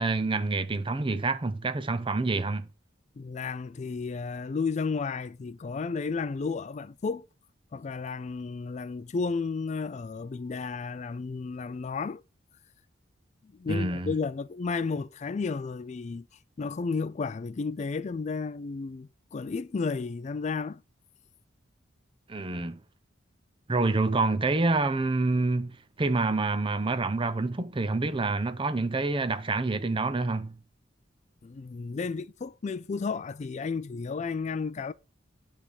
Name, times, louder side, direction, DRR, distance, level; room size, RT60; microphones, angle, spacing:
voice 1, 0.0-2.7 13.7-14.1 22.3-22.8 23.7-30.6, right 3 dB, 25° right, 0.6 m, -27 dB
voice 2, 3.2-7.2 7.7-12.2 13.4-16.3 16.6-20.8 31.4-34.9, left 4 dB, 40° left, 0.4 m, -32 dB
9.9 x 3.5 x 6.3 m
head